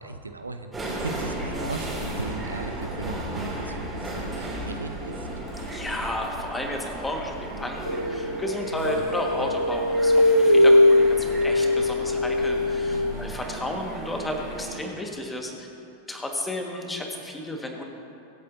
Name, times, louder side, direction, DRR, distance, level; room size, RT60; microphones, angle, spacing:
voice 1, 0.0-5.3 8.7-9.1 9.4-9.6 12.9-13.3, right 3 dB, 80° right, 8 dB, 0.6 m, -37 dB
sound 1, 0.7-14.8, right 1 dB, 15° right, 2.8 m, -35 dB
Gunshot gunfire, 5.5-6.7, left 1 dB, 45° left, 2.7 m, -49 dB
voice 2, 5.7-15.7 16.1-17.8, left 1 dB, 10° left, 1 dB, 1.6 m, -32 dB
sound 2, 7.9-13.1, left 1 dB, 90° left, 0.3 m, -21 dB
24.0 x 8.4 x 2.7 m, 2.6 s
figure-of-eight pair, 90°, 0 cm